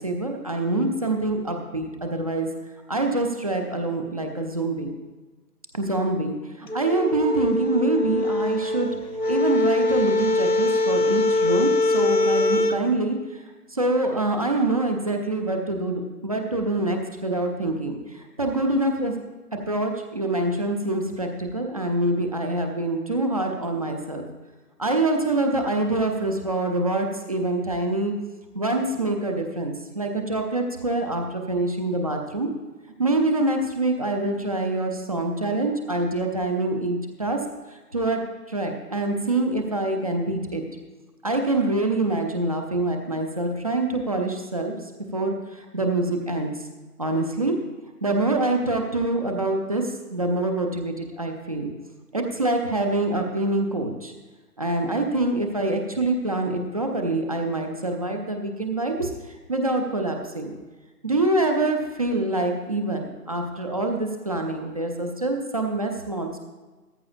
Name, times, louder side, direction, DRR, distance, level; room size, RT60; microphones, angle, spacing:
voice 1, 0.0-2.5 2.9-4.9 5.7-8.9 9.3-13.4 13.7-19.1 19.7-24.3 24.8-28.1 28.5-32.5 33.0-37.4 37.7-40.6 41.2-44.8 45.1-46.5 47.0-47.6 48.0-51.7 52.1-54.1 54.6-60.6 61.0-66.4, right 2 dB, 25° right, 3 dB, 0.6 m, -25 dB
sound 1, 6.7-12.8, left 2 dB, 85° left, 1.0 m, -23 dB
15.5 x 14.0 x 2.5 m, 1.3 s
figure-of-eight pair, 145°, 48 cm